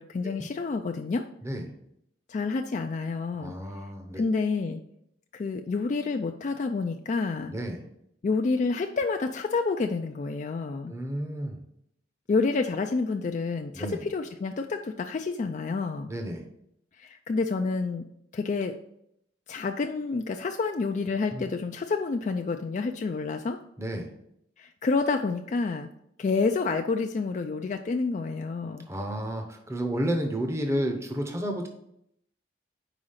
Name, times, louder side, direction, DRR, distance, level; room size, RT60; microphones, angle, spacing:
voice 1, 0.0-1.3 2.3-3.5 4.2-4.8 5.3-7.5 8.2-10.9 12.3-16.1 17.0-18.0 18.3-18.7 19.5-23.6 24.6-25.9 26.2-28.9, left 4 dB, 40° left, 5 dB, 0.3 m, -29 dB
voice 2, 3.4-4.3 7.5-7.9 10.9-11.6 13.7-14.1 16.1-16.5 21.3-21.4 23.8-24.1 28.9-31.7, right 1 dB, 15° right, 3 dB, 0.7 m, -31 dB
5.0 x 4.8 x 5.6 m, 0.75 s
head